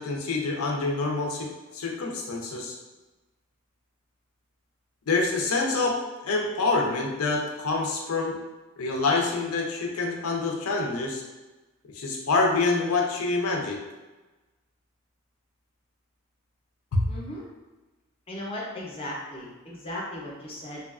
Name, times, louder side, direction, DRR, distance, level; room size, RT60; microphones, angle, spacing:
voice 1, 0.0-2.8 5.1-6.0 6.2-8.4 8.8-11.2 11.9-13.8 16.9-17.0, left 3 dB, 85° left, 1 dB, 0.5 m, -26 dB
voice 2, 17.1-17.4 18.3-20.8, left 1 dB, 25° left, -3 dB, 0.5 m, -36 dB
2.7 x 2.3 x 2.3 m, 1.2 s
head